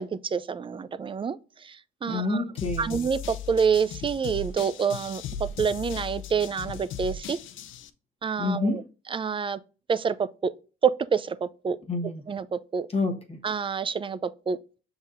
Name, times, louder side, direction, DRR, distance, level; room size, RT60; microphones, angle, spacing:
voice 1, 0.0-2.4 2.8-7.4 8.2-8.8 9.1-9.6 9.9-10.5 10.8-11.8 12.3-12.9 13.4-14.6, right 6 dB, 25° right, 0.4 m, -27 dB
voice 2, 2.1-3.0 8.4-8.8 11.9-12.2 12.9-13.4, left 3 dB, 30° left, 1.1 m, -28 dB
sound 1, 2.6-7.9, left 6 dB, 75° left, 0.6 m, -37 dB
5.4 x 3.9 x 2.5 m
cardioid pair, 90°, 20 cm